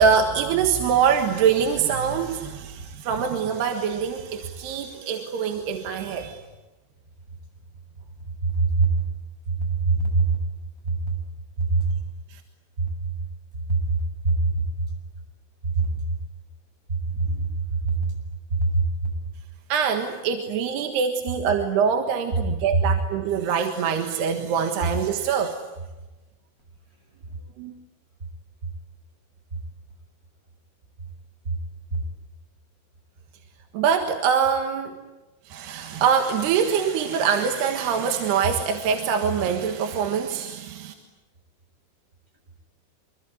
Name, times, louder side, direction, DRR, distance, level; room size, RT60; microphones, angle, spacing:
voice 1, 0.0-6.4 12.3-12.4 19.7-25.6 27.6-27.7 33.7-35.0 35.5-40.9, right 7 dB, 70° right, 5 dB, 3.5 m, -24 dB
voice 2, 8.6-8.9 9.8-10.4 11.7-11.8 13.7-14.0 14.2-14.3 17.1-17.4 17.8-17.9 18.6-18.8, right 3 dB, 20° right, 2 dB, 7.3 m, -21 dB
26.5 x 23.5 x 9.4 m, 1.1 s
omnidirectional pair, 5.2 m